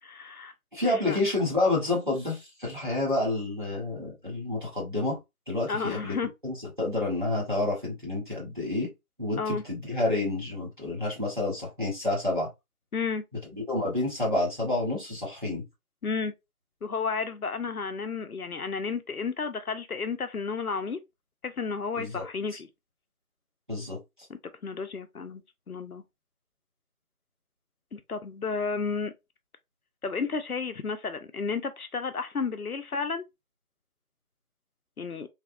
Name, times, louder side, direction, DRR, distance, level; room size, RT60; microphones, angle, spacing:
voice 1, 0.0-0.5 0.9-1.2 5.7-6.3 9.4-9.6 12.9-13.2 16.0-16.3 16.8-21.0 21.4-22.7 24.3-25.4 25.7-26.0 27.9-29.1 30.0-33.2 35.0-35.3, left 5 dB, 70° left, 0.6 m, -32 dB
voice 2, 0.7-5.2 5.5-6.2 6.4-8.9 9.2-12.5 13.7-15.6 22.0-22.2 23.7-24.0, left 2 dB, 35° right, 1.2 m, -29 dB
3.3 x 2.4 x 2.4 m
figure-of-eight pair, 175°, 45 cm